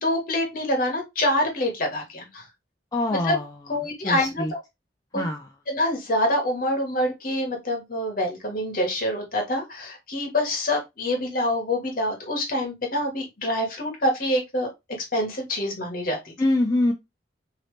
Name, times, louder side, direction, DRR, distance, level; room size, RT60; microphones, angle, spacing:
voice 1, 0.0-2.4 3.2-3.4 3.7-4.6 5.1-5.3 5.7-14.7 15.1-16.3, left 1 dB, 50° left, 1.1 m, -26 dB
voice 2, 2.9-3.5 4.0-4.5 5.1-5.5 16.4-16.9, left 1 dB, 20° left, 0.4 m, -24 dB
3.0 x 2.8 x 3.1 m
head